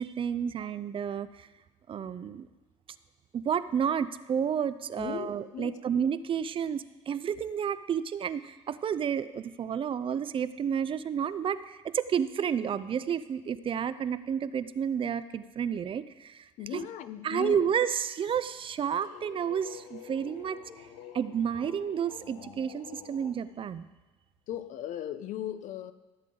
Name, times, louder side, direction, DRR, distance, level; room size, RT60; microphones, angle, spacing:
voice 1, 0.0-1.5 1.9-2.5 3.3-16.9 17.2-20.6 21.1-23.9, right 8 dB, 35° right, 0.5 m, -31 dB
voice 2, 5.0-5.8 16.6-17.6 24.5-25.9, left 11 dB, 60° left, 0.6 m, -37 dB
sound 1, 18.5-23.4, left 7 dB, 85° left, 1.1 m, -48 dB
15.0 x 7.6 x 3.9 m
supercardioid pair, 80°, 15 cm